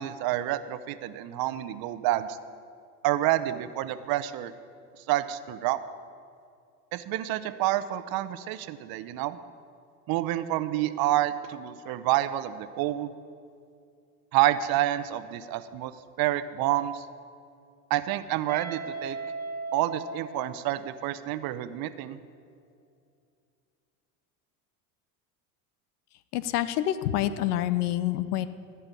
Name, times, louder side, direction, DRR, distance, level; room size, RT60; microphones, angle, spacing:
voice 1, 0.0-2.4 3.0-4.5 5.1-5.8 6.9-9.4 10.1-13.1 14.3-15.9 16.2-17.1 17.9-19.2 19.7-22.2, right 14 dB, 50° right, 13 dB, 0.8 m, -28 dB
Guitar, 18.5-21.3, right 3 dB, 20° right, 1.3 m, -37 dB
voice 2, 26.3-28.5, left 13 dB, 75° left, 14 dB, 0.7 m, -27 dB
14.0 x 5.7 x 8.2 m, 2.4 s
hypercardioid pair, 85°, 46 cm